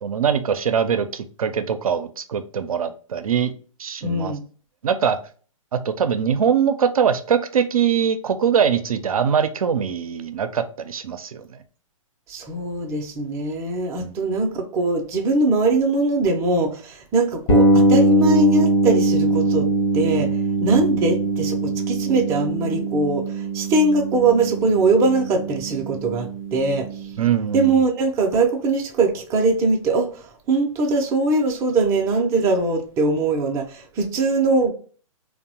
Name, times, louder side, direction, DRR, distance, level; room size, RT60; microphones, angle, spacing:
voice 1, 0.0-3.5 3.8-4.3 4.8-5.2 5.7-11.6 14.0-14.1 20.7-20.8 27.2-27.8, right 7 dB, 90° right, 0.4 m, -22 dB
voice 2, 4.0-4.4 12.3-19.7 19.9-20.3 20.6-27.1 27.5-34.7, right 3 dB, 15° right, 0.4 m, -21 dB
sound 1, 17.5-27.2, right 2 dB, 40° left, 0.7 m, -21 dB
2.8 x 2.0 x 2.7 m
hypercardioid pair, 135°, 18 cm